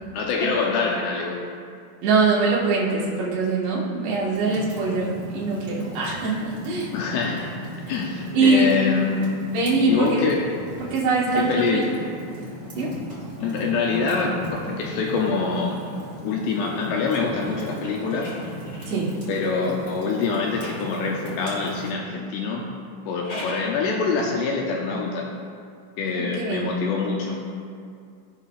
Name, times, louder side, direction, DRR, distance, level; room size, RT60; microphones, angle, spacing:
voice 1, 0.1-1.4 6.9-7.5 7.9-9.4 9.9-10.5 11.4-11.9 13.4-15.8 16.2-18.3 19.3-22.7 23.1-25.3 26.0-27.4, left 4 dB, 85° left, -1 dB, 2.5 m, -25 dB
voice 2, 2.0-6.9 8.3-8.7 9.5-10.1 10.9-11.8 12.7-12.9 18.9-19.1 26.1-26.6, right 3 dB, 75° right, -6 dB, 3.6 m, -22 dB
Fire, 4.3-21.9, left 1 dB, 50° right, 0.6 m, -37 dB
sound 1, 15.5-19.3 20.1-21.5 22.9-23.8, left 1 dB, 40° left, 2.3 m, -42 dB
16.5 x 5.7 x 2.4 m, 2.3 s
omnidirectional pair, 5.2 m